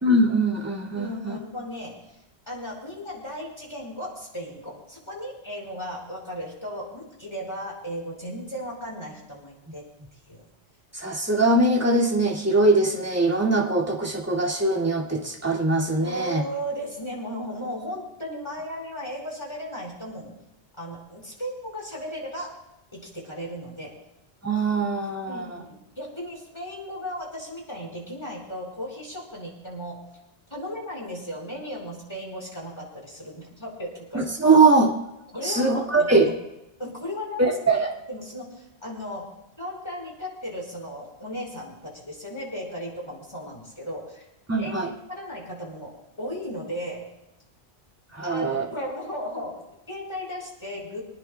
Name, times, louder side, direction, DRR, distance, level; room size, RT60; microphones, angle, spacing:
voice 1, 0.0-1.4 10.9-16.4 24.4-25.6 34.1-34.9 35.4-36.3 37.4-37.9 44.5-44.9 48.1-48.7, right 2 dB, 15° right, -3 dB, 2.4 m, -22 dB
voice 2, 0.9-2.0 2.5-9.8 10.3-10.4 16.0-20.3 20.8-22.5 22.9-23.9 25.3-30.0 30.5-34.2 35.3-36.3 36.8-37.5 38.1-39.3 39.6-44.2 44.6-47.1 48.2-51.0, equal, 25° left, -2 dB, 5.1 m, -36 dB
26.0 x 18.5 x 2.3 m, 0.91 s
omnidirectional pair, 1.2 m